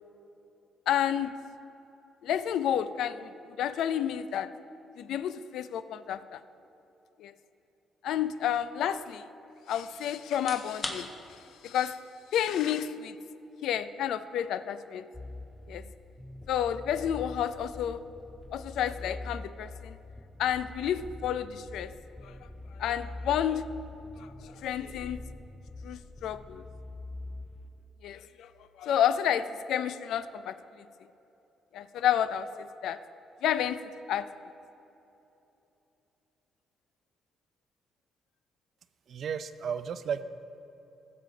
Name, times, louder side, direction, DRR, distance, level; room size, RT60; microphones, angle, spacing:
voice 1, 0.9-1.3 2.2-4.5 5.0-6.4 7.2-7.3 8.0-9.2 9.7-11.1 11.6-12.0 12.3-13.2 13.6-15.1 15.7-15.8 16.5-18.0 18.5-20.0 20.4-21.9 22.2-22.4 22.7-23.6 24.2-25.2 25.8-26.6 28.0-28.5 28.8-30.9 31.7-33.0 33.4-33.8 34.1-34.3, left 10 dB, 80° left, 13 dB, 0.4 m, -30 dB
sound 1, 10.3-25.1, left 2 dB, 25° left, 1.3 m, -50 dB
sound 2, 15.1-27.7, left 2 dB, 10° left, 0.5 m, -44 dB
voice 2, 39.1-40.2, right 7 dB, 60° right, 12 dB, 0.5 m, -33 dB
15.5 x 6.7 x 3.9 m, 3.0 s
cardioid pair, 90°, 0 cm